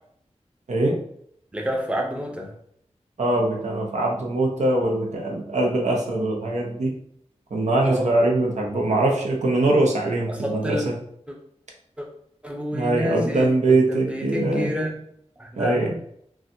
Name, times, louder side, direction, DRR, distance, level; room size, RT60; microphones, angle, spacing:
voice 1, 1.5-2.5 7.8-8.1 10.4-10.9 11.3-11.4 12.0-12.1 12.4-15.0 15.4-15.8, equal, 10° right, 0 dB, 0.7 m, -29 dB
voice 2, 3.2-6.9 7.5-10.9 12.7-14.7 15.6-15.9, right 2 dB, 85° right, -1 dB, 0.7 m, -22 dB
3.9 x 2.3 x 2.6 m, 0.70 s
wide cardioid pair, 85°, 12 cm